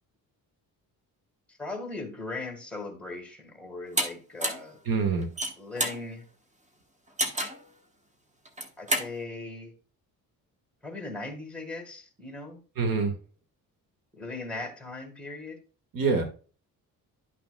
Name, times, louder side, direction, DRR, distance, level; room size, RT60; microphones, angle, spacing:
voice 1, 1.6-4.8 5.6-6.3 8.8-9.7 10.8-12.6 14.1-15.6, left 3 dB, 5° left, 4 dB, 1.6 m, -38 dB
sound 1, 4.0-4.1 4.4-4.7 5.2-6.0 7.2-7.6 8.4-9.1, right 1 dB, 20° right, 1.1 m, -28 dB
voice 2, 4.8-5.3 12.8-13.1 15.9-16.2, right 4 dB, 70° right, 5 dB, 1.7 m, -25 dB
11.0 x 5.9 x 2.2 m, 0.37 s
cardioid pair, 150°, 36 cm